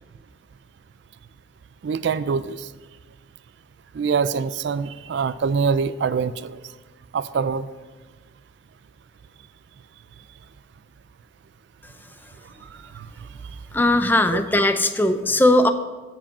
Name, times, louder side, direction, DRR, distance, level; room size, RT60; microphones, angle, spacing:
voice 1, 1.8-2.7 3.9-6.6 7.1-7.7 12.7-13.1 14.3-14.4, right 5 dB, 60° right, 16 dB, 0.3 m, -24 dB
voice 2, 13.7-15.7, left 1 dB, 10° left, 9 dB, 0.4 m, -18 dB
14.5 x 5.0 x 5.3 m, 1.3 s
head